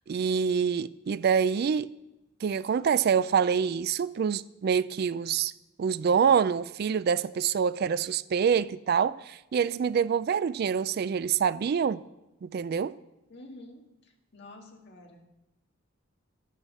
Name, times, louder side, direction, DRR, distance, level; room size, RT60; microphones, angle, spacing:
voice 1, 0.1-1.9 2.4-5.5 5.8-12.0 12.4-12.9, right 7 dB, 50° right, 0.3 m, -26 dB
voice 2, 13.3-15.3, left 2 dB, 55° left, 1.9 m, -49 dB
12.5 x 9.1 x 6.3 m
head